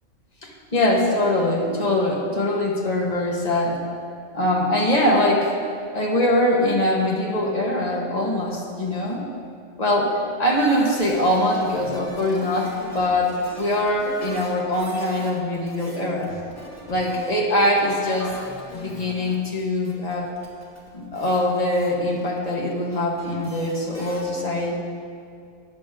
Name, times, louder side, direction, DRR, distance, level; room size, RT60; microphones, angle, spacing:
voice 1, 0.4-3.8 4.3-5.5 5.9-9.3 9.8-16.3 16.9-18.3 18.7-20.3 20.9-24.7, left 1 dB, 30° left, -2 dB, 1.7 m, -22 dB
sound 1, 10.6-24.2, equal, 10° left, 2.2 m, -41 dB
14.5 x 10.0 x 3.8 m, 2.3 s
omnidirectional pair, 1.4 m